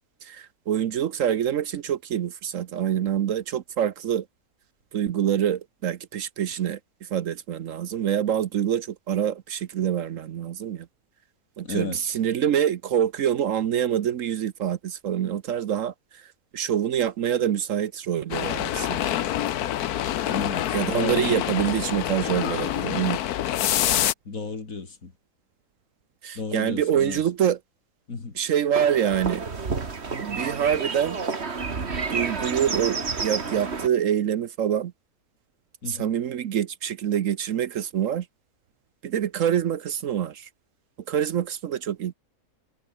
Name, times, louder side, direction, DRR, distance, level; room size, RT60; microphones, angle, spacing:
voice 1, 0.2-4.2 4.9-10.9 11.6-16.2 16.5-19.1 20.7-23.2 26.2-27.6 28.3-29.4 30.2-31.2 32.1-34.9 35.9-38.3 39.0-40.5 41.1-42.1, right 9 dB, 65° right, 1.1 m, -26 dB
voice 2, 11.6-12.0 20.3-21.4 24.2-25.1 26.3-27.2 28.1-28.4 35.8-36.1, left 4 dB, 60° left, 3.1 m, -33 dB
sound 1, 18.3-24.1, left 12 dB, 80° left, 1.3 m, -26 dB
sound 2, 28.7-33.9, right 4 dB, 45° right, 2.2 m, -30 dB
omnidirectional pair, 1.6 m